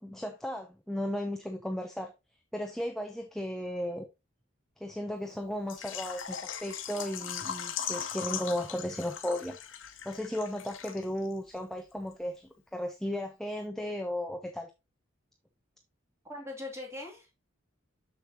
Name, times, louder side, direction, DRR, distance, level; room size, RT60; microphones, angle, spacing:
voice 1, 0.0-2.1 2.5-4.1 4.8-9.6 10.0-14.7, left 1 dB, ahead, 0.5 m, -35 dB
Water / Liquid, 5.7-11.3 11.6-11.7 12.1-12.2, left 8 dB, 70° left, 1.0 m, -39 dB
voice 2, 16.2-17.3, left 2 dB, 15° right, 2.6 m, -41 dB
6.8 x 6.6 x 2.8 m
head